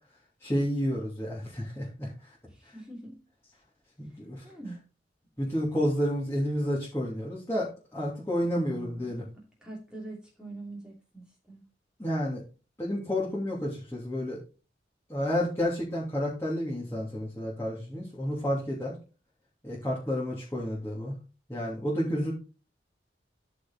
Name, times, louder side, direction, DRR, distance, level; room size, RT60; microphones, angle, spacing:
voice 1, 0.4-2.3 4.0-4.4 5.4-9.2 12.0-12.4 12.8-14.4 15.1-18.9 19.6-21.1 21.5-22.3, equal, 15° left, -6 dB, 2.9 m, -30 dB
voice 2, 2.4-3.2 4.0-4.2 4.4-4.8 8.5-11.6, right 2 dB, 5° right, -4 dB, 2.8 m, -44 dB
13.5 x 5.0 x 4.0 m, 0.33 s
head